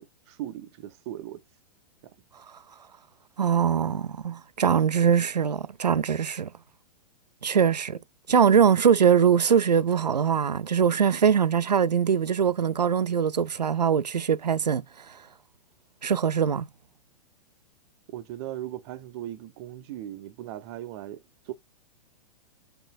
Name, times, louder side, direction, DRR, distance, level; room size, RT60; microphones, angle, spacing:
voice 1, 0.0-1.4 8.6-8.7 18.1-21.5, right 13 dB, 40° right, 0.7 m, -38 dB
voice 2, 3.4-6.5 7.4-8.0 8.3-14.8 16.0-16.7, right 7 dB, 90° right, 0.5 m, -22 dB
5.6 x 3.9 x 2.2 m
figure-of-eight pair, 110°, 21 cm